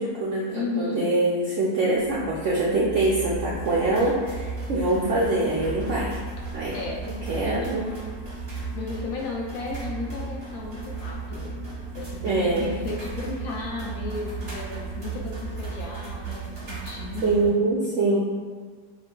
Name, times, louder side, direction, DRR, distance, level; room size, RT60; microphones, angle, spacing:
voice 1, 0.0-6.2 6.5-6.7 7.3-7.9 12.2-12.7 17.2-18.2, right 2 dB, 75° right, -5 dB, 0.7 m, -24 dB
voice 2, 0.5-1.1 6.7-7.0 7.4-7.6 8.7-11.6 11.9-17.7, left 3 dB, 70° left, -1 dB, 0.9 m, -34 dB
sound 1, 1.9-15.8, right 2 dB, 15° right, 0.9 m, -38 dB
sound 2, 3.5-17.5, right 5 dB, 40° right, 0.8 m, -38 dB
6.8 x 2.4 x 2.2 m, 1.5 s
omnidirectional pair, 1.8 m